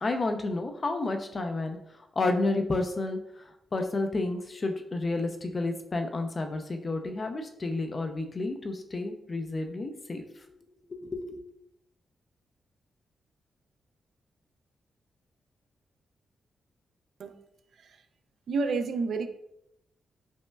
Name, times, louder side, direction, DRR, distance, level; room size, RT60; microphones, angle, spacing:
voice 1, 0.0-1.8 2.2-10.2 10.9-11.4, left 2 dB, 40° left, 5 dB, 0.4 m, -31 dB
voice 2, 18.5-19.3, right 4 dB, 75° right, 8 dB, 0.3 m, -30 dB
5.3 x 2.1 x 2.2 m, 0.78 s
cardioid pair, 80°, 0 cm